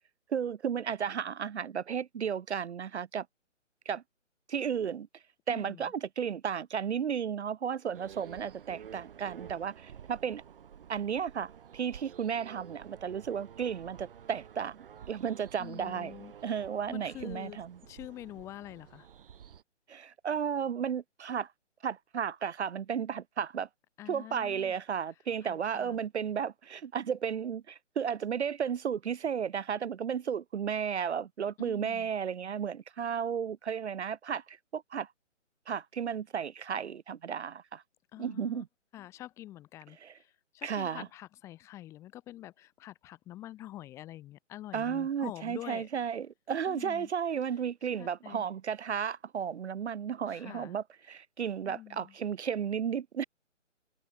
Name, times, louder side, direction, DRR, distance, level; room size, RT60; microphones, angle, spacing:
voice 1, 0.3-3.3 3.9-4.0 4.5-5.1 5.5-10.4 10.9-16.1 16.4-17.8 19.9-21.5 21.8-23.7 24.1-35.1 35.7-37.8 38.2-38.7 40.0-40.2 40.6-41.1 44.7-53.2, right 7 dB, 60° right, 0.6 m, -34 dB
voice 2, 5.5-5.9 15.6-16.3 16.9-17.6 17.9-19.1 24.0-24.8 25.4-26.0 31.6-32.1 38.1-38.6 38.9-45.9 46.7-47.1 47.9-48.4 50.3-50.8 51.6-52.1, left 14 dB, 5° left, 0.9 m, -46 dB
sound 1, 7.9-19.6, right 8 dB, 45° right, 4.8 m, -51 dB
figure-of-eight pair, 145°, 38 cm